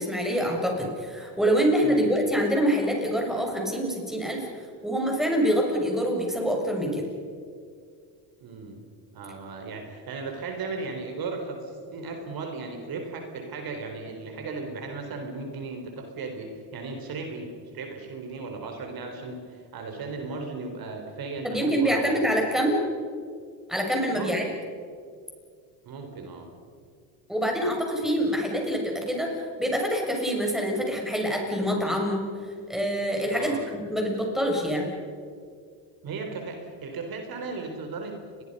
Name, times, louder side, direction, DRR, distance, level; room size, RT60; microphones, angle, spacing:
voice 1, 0.0-4.5 4.8-7.0 21.4-22.8 23.7-24.5 27.3-32.2 32.7-33.6 33.9-34.9, equal, ahead, 0 dB, 6.8 m, -25 dB
voice 2, 8.4-8.8 9.1-22.2 24.1-24.4 25.8-26.5 33.3-33.6 36.0-38.4, right 3 dB, 50° right, 4 dB, 4.3 m, -36 dB
30.0 x 22.5 x 5.6 m, 2.2 s
supercardioid pair, 110°, 47 cm